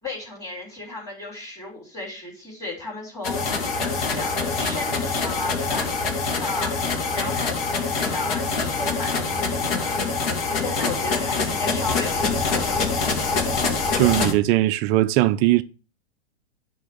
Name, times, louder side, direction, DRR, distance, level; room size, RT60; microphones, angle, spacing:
voice 1, 0.0-3.5 3.8-6.8 7.1-10.0 10.6-12.8, left 3 dB, 10° left, 3.4 m, -34 dB
sound 1, 3.2-14.3, left 4 dB, 60° left, 2.1 m, -25 dB
voice 2, 14.0-15.6, right 16 dB, 25° right, 0.5 m, -19 dB
9.7 x 3.5 x 6.9 m
figure-of-eight pair, 105°, 32 cm